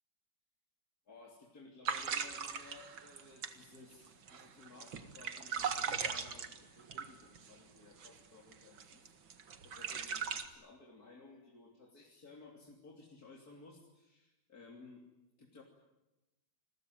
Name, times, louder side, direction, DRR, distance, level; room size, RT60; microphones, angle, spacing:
voice 1, 1.1-9.1 9.6-15.0 15.4-15.6, left 3 dB, 50° left, -1 dB, 3.7 m, -57 dB
sound 1, 1.8-7.5 8.0-8.2 8.5-10.5, right 6 dB, 75° right, 2.6 m, -39 dB
29.0 x 21.5 x 9.3 m, 0.99 s
omnidirectional pair, 2.2 m